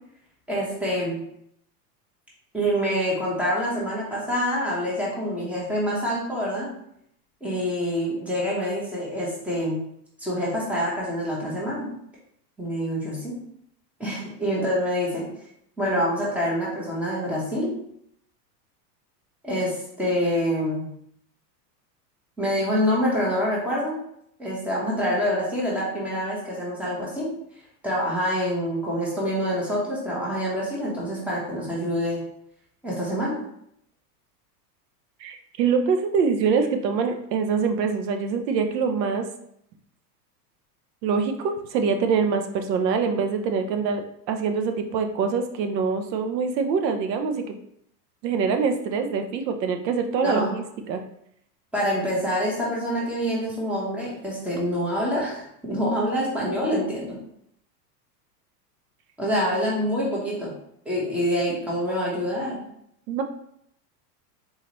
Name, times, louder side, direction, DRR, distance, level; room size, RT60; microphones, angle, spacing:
voice 1, 0.5-1.2 2.5-6.7 7.4-9.8 10.2-11.9 12.6-13.4 14.0-15.2 15.8-17.7 19.4-20.9 22.4-24.0 24.4-27.3 27.8-32.2 32.8-33.4 50.2-50.5 51.7-57.2 59.2-60.5 60.8-62.6, equal, 5° right, -5 dB, 1.0 m, -26 dB
voice 2, 35.2-39.3 41.0-44.0 44.3-47.5 48.2-51.0 63.1-63.2, right 5 dB, 90° right, 6 dB, 0.7 m, -24 dB
4.0 x 2.9 x 3.0 m, 0.71 s
supercardioid pair, 140°, 49 cm